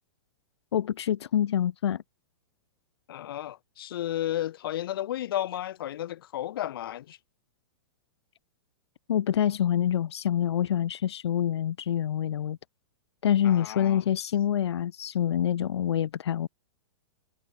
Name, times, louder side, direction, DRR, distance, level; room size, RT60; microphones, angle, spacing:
voice 1, 0.7-2.0 9.1-12.6 13.2-16.5, left 10 dB, 85° left, 1.1 m, -26 dB
voice 2, 3.1-7.2 13.4-14.0, left 12 dB, 60° left, 1.4 m, -33 dB
supercardioid pair, 170°, 14 cm